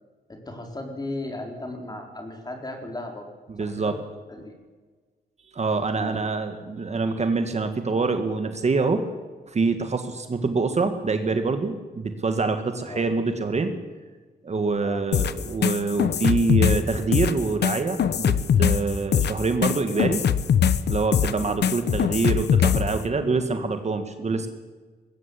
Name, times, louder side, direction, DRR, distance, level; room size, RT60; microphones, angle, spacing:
voice 1, 0.3-3.3 3.6-3.9 4.3-4.6 6.0-6.2 12.9-13.0 14.8-15.1 21.4-21.6, left 2 dB, 25° left, 3 dB, 4.2 m, -36 dB
voice 2, 3.5-3.9 5.5-9.0 9.5-13.7 14.4-20.2 20.9-24.5, right 4 dB, 40° right, 7 dB, 1.7 m, -25 dB
sound 1, 15.1-23.0, left 8 dB, 75° left, 1.0 m, -22 dB
20.5 x 16.5 x 8.4 m, 1.4 s
wide cardioid pair, 110°, 17 cm